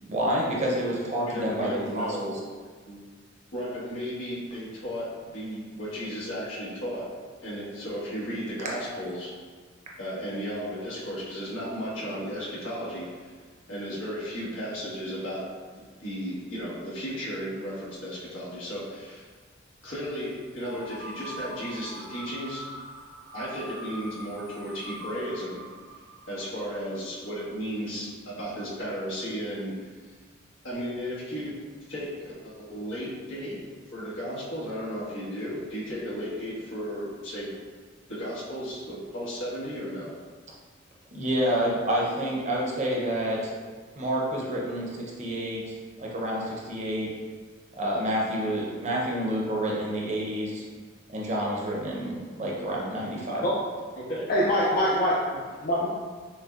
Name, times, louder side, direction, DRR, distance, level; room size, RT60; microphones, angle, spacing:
voice 1, 0.0-2.3 41.1-43.5 44.0-47.1 47.8-50.6 51.1-53.4, equal, 35° right, -3 dB, 0.6 m, -28 dB
voice 2, 1.3-2.4 2.9-3.0 3.5-7.1 7.4-9.3 10.0-13.3 13.7-15.4 15.7-19.3 19.8-22.6 23.3-25.6 26.3-29.9 30.6-31.5 31.9-33.6 33.9-37.5 38.1-40.1 53.9-54.3, equal, 85° left, -8 dB, 1.3 m, -34 dB
sound 1, 20.6-27.4, equal, 75° right, 1.0 m, -43 dB
voice 3, 54.3-55.9, equal, 45° left, -5 dB, 0.4 m, -24 dB
6.2 x 2.1 x 2.4 m, 1.5 s
head